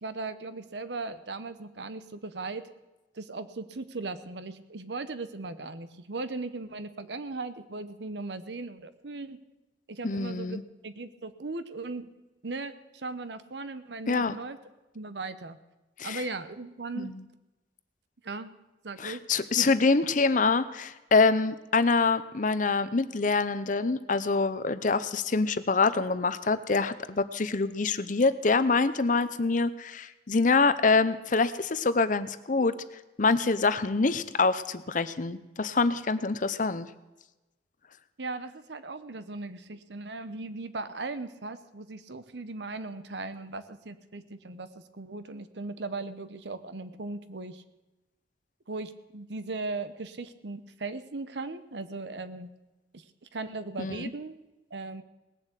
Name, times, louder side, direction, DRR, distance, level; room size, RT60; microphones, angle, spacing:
voice 1, 0.0-2.6 3.1-9.4 9.9-12.1 12.4-14.6 14.9-15.6 16.0-17.1 18.2-18.5 18.8-19.2 19.5-19.7 38.2-47.6 48.7-52.5 52.9-53.0 53.3-54.4 54.7-55.0, right 3 dB, 75° right, 12 dB, 0.9 m, -38 dB
voice 2, 10.0-10.6 14.1-14.3 16.0-16.2 17.0-17.2 19.0-32.7 33.2-36.9 53.8-54.1, left 4 dB, 45° left, 13 dB, 0.7 m, -25 dB
19.0 x 7.4 x 8.2 m, 1.0 s
head